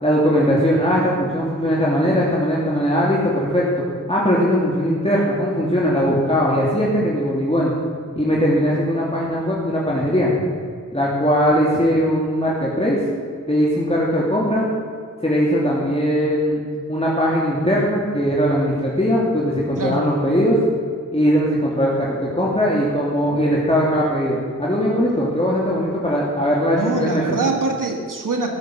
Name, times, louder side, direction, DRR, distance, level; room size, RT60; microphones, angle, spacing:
voice 1, 0.0-3.6 4.1-7.7 8.2-10.3 10.9-13.0 13.5-14.7 15.2-16.6 16.9-20.6 21.1-27.4, equal, 20° left, -5 dB, 2.8 m, -19 dB
voice 2, 26.7-28.5, right 3 dB, 85° right, 2 dB, 2.0 m, -23 dB
16.5 x 7.2 x 7.8 m, 2.1 s
wide cardioid pair, 50°, 31 cm